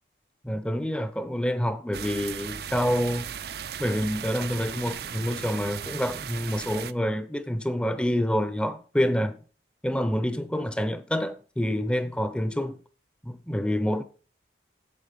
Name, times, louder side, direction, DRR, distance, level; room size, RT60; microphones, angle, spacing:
voice 1, 0.4-3.3 3.8-9.4 9.8-12.8 13.2-14.0, equal, 5° left, 0.6 m, -27 dB
sound 1, 1.9-6.9, right 8 dB, 60° right, 0.5 m, -37 dB
8.4 x 7.5 x 5.7 m
head